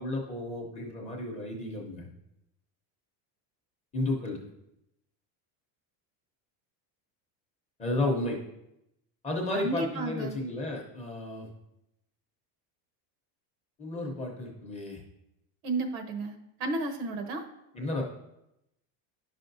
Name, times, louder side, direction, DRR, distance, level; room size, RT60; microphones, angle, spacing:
voice 1, 0.0-2.1 3.9-4.4 7.8-8.4 9.2-11.5 13.8-15.0 17.8-18.0, left 2 dB, 15° left, -2 dB, 0.6 m, -32 dB
voice 2, 9.5-10.4 15.6-16.3 16.6-17.4, right 2 dB, 90° right, 5 dB, 1.2 m, -32 dB
10.5 x 5.7 x 2.6 m, 0.86 s
cardioid pair, 175°, 49 cm